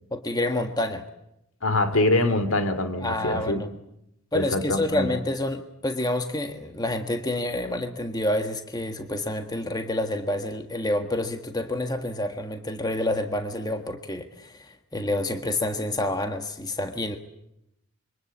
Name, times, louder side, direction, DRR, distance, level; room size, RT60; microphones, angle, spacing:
voice 1, 0.1-1.1 3.0-3.7 4.3-17.2, left 1 dB, 20° left, 6 dB, 1.5 m, -28 dB
voice 2, 1.6-3.6 4.3-5.1, left 2 dB, 65° left, 11 dB, 2.5 m, -24 dB
27.0 x 24.0 x 8.5 m, 0.81 s
head